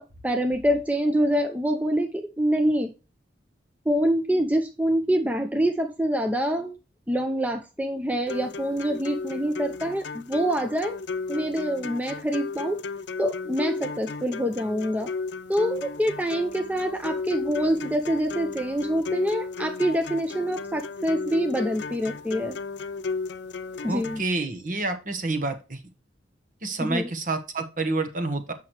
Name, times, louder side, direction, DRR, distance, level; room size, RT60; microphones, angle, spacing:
voice 1, 0.0-2.9 3.9-6.8 7.1-11.0 11.3-12.8 13.2-15.1 15.5-22.6 23.8-24.2 26.8-27.1, equal, 10° right, 5 dB, 0.6 m, -26 dB
sound 1, 8.3-24.3, left 4 dB, 70° left, 0.6 m, -34 dB
voice 2, 23.9-25.8 26.6-28.5, right 3 dB, 45° right, 7 dB, 1.2 m, -28 dB
8.4 x 5.8 x 3.0 m, 0.30 s
head